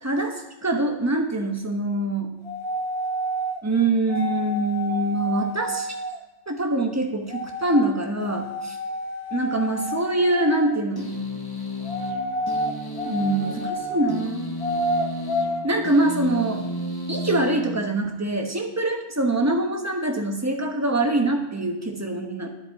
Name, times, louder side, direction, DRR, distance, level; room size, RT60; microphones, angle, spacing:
voice 1, 0.0-2.4 3.6-5.9 6.5-8.8 9.3-11.1 13.0-14.4 15.6-16.7 17.1-22.5, right 2 dB, 10° right, 3 dB, 1.0 m, -24 dB
sound 1, 2.4-3.6 4.1-6.2 7.3-7.9 8.2-10.8 11.8-14.1 14.6-15.6, equal, 70° left, 1.7 m, -29 dB
sound 2, 11.0-18.4, equal, 20° left, 0.9 m, -33 dB
10.5 x 9.8 x 4.8 m, 0.97 s
omnidirectional pair, 1.6 m